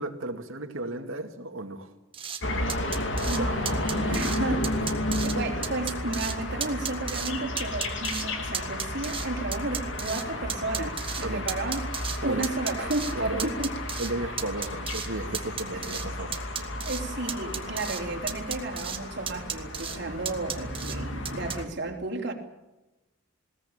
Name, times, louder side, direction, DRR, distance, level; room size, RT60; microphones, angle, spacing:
voice 1, 0.0-1.9 3.4-3.5 4.7-4.9 11.2-11.5 12.2-12.5 13.1-13.5 14.0-16.4, right 2 dB, 75° right, 2.3 m, -34 dB
sound 1, 2.1-2.4 2.7-3.4 3.7-4.4 4.6-5.3 5.6-6.3 6.6-7.3 7.6-8.2 8.5-10.2 10.5-12.2 12.4-13.1 13.4-14.1 14.4-15.1 15.3-16.1 16.3-17.0 17.3-18.0 18.3-19.0 19.3-20.0 20.2-21.0 21.2-21.6, right 8 dB, 25° right, 1.8 m, -34 dB
sound 2, 2.4-21.6, left 1 dB, 60° left, 2.7 m, -33 dB
voice 2, 3.2-4.9 5.2-11.9 12.2-13.8 15.7-16.0 16.8-22.3, right 2 dB, 55° right, 3.5 m, -33 dB
20.5 x 18.5 x 8.9 m
head